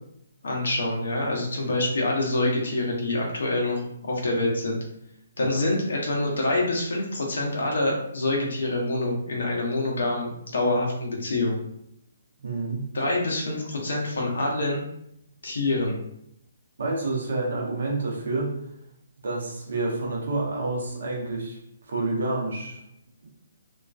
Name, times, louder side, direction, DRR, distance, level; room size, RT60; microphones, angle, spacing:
voice 1, 0.4-4.8 5.4-11.6 12.9-14.8 15.4-16.0, left 2 dB, 60° left, -1 dB, 0.7 m, -26 dB
voice 2, 12.4-12.9 16.8-18.5 19.2-21.6 21.9-22.8 23.2-23.3, right 2 dB, 60° right, -1 dB, 0.7 m, -28 dB
2.4 x 2.2 x 2.4 m, 0.74 s
figure-of-eight pair, 130°, 0 cm